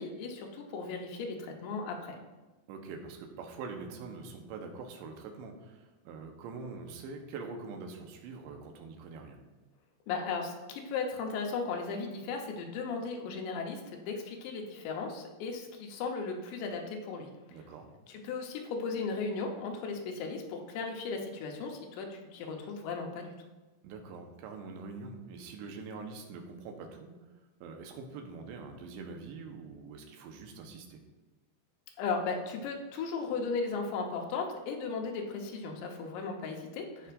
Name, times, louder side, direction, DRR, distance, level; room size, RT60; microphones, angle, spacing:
voice 1, 0.0-2.2 10.1-17.3 18.1-23.3 32.0-37.1, left 4 dB, 85° left, 2 dB, 3.3 m, -36 dB
voice 2, 2.7-9.4 17.5-17.9 23.8-27.1 27.6-31.0 37.0-37.1, right 4 dB, 90° right, 3 dB, 3.3 m, -44 dB
16.0 x 5.8 x 2.5 m, 1.2 s
omnidirectional pair, 5.0 m